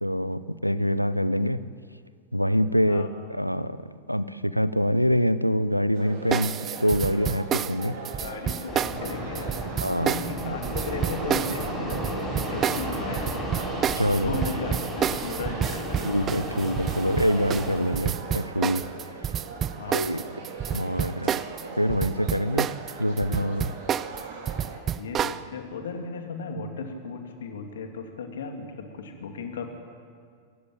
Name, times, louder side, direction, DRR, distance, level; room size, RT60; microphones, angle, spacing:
voice 1, 0.0-1.6 2.3-3.8 4.1-7.9 9.8-10.1 14.0-14.4 16.0-18.8 19.9-20.2 20.7-21.4 21.8-22.7 23.0-23.7, equal, 90° right, 15 dB, 0.7 m, -25 dB
sound 1, 5.9-24.8, right 4 dB, 55° right, 4.7 m, -39 dB
sound 2, 6.3-21.6 21.9-25.4, right 9 dB, 25° right, 0.6 m, -29 dB
voice 2, 8.2-13.5 14.2-16.1 19.8-20.3 25.0-29.7, left 4 dB, 65° left, 4 dB, 2.9 m, -36 dB
Fixed-wing aircraft airplane, 8.7-17.8, equal, 5° left, 7.7 m, -34 dB
27.0 x 15.0 x 9.0 m, 2.1 s
figure-of-eight pair, 90°, 0 cm